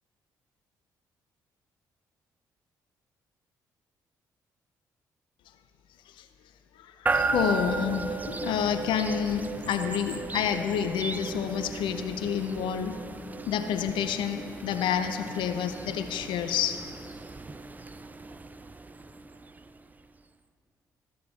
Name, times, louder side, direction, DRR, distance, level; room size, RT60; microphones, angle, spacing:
voice 1, 6.8-13.0 13.5-16.8, left 8 dB, 60° left, 7 dB, 0.4 m, -29 dB
sound 1, 7.1-20.0, right 3 dB, 15° right, 0.4 m, -35 dB
13.5 x 6.6 x 3.4 m, 2.6 s
figure-of-eight pair, 45°, 9 cm